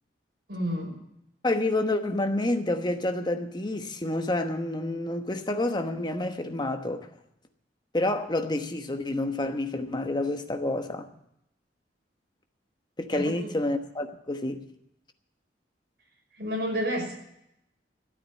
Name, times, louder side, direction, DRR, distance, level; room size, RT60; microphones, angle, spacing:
voice 1, 0.5-1.0 13.1-13.5 16.4-17.1, equal, 60° right, 5.8 m, -30 dB
voice 2, 1.4-7.1 7.9-11.1 13.0-14.6, left 2 dB, 25° left, 1.1 m, -28 dB
13.5 x 8.9 x 8.5 m
head